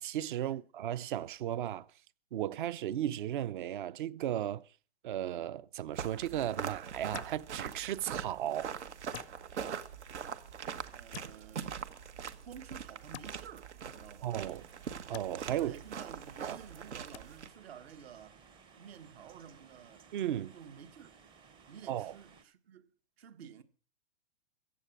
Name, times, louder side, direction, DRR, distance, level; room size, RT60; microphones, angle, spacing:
voice 1, 0.0-1.9 2.3-4.6 5.0-8.7 14.2-14.6 15.1-15.7 16.5-16.6 20.1-20.5 21.9-22.1, right 11 dB, 50° right, 0.7 m, -35 dB
sound 1, 6.0-17.5, right 7 dB, 85° right, 1.6 m, -42 dB
sound 2, 7.1-7.4 9.1-9.3 11.1-11.3 13.1-13.3 15.1-15.3 17.1-17.2, left 12 dB, 70° left, 0.6 m, -45 dB
voice 2, 10.9-11.7 12.4-14.4 15.6-18.4 18.8-20.1 20.5-21.1 21.7-22.9 23.2-23.6, right 8 dB, 65° right, 1.6 m, -52 dB
sound 3, 14.4-22.4, right 5 dB, 15° right, 0.7 m, -59 dB
15.0 x 8.5 x 7.4 m
hypercardioid pair, 150°, 34 cm